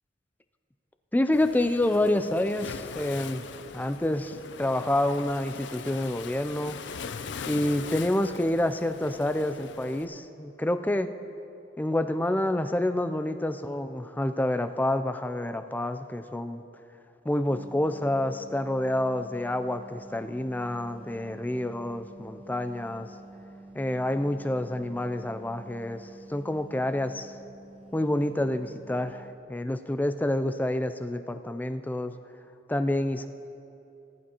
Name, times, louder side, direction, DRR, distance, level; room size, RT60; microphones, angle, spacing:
voice 1, 1.1-3.4 3.7-6.8 7.5-11.1 11.8-16.6 17.3-23.1 23.7-27.3 27.9-32.1 32.7-33.3, left 1 dB, 10° left, 10 dB, 0.3 m, -28 dB
Waves surf, 1.3-10.0, left 6 dB, 65° left, 0.5 m, -41 dB
sound 1, 17.5-29.3, right 2 dB, 30° right, 0.7 m, -49 dB
19.5 x 11.0 x 2.9 m, 2.8 s
head